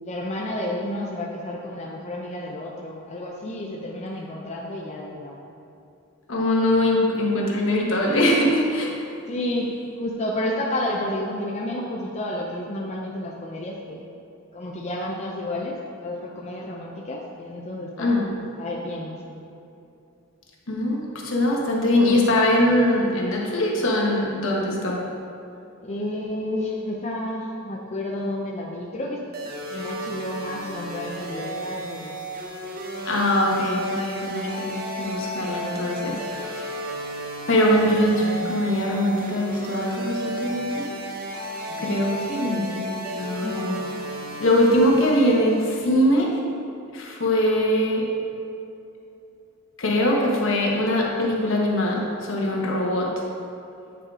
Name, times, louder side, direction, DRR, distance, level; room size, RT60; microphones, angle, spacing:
voice 1, 0.0-5.4 9.3-14.0 14.5-18.1 18.6-19.4 25.8-29.2 29.7-32.2 41.7-42.9 43.4-43.7, left 1 dB, 35° left, -2 dB, 0.5 m, -31 dB
voice 2, 6.3-8.9 18.0-18.3 20.7-25.0 33.0-36.7 37.5-40.9 41.8-43.8 44.4-46.3 46.9-48.0 49.8-53.1, left 1 dB, 65° left, -2 dB, 1.2 m, -22 dB
sound 1, 29.3-45.7, equal, 45° right, 1.0 m, -33 dB
9.1 x 4.8 x 3.7 m, 2.7 s
head